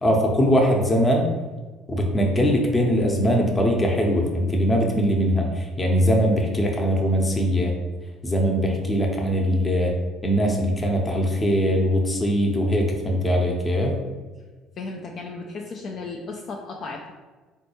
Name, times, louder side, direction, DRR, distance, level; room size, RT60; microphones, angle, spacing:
voice 1, 0.0-1.3 1.9-7.7 8.2-9.9 10.2-14.0, equal, 25° left, 1 dB, 0.8 m, -21 dB
voice 2, 14.8-17.1, left 3 dB, 50° left, 0 dB, 0.4 m, -35 dB
4.0 x 2.3 x 3.0 m, 1.3 s
hypercardioid pair, 55°, 0 cm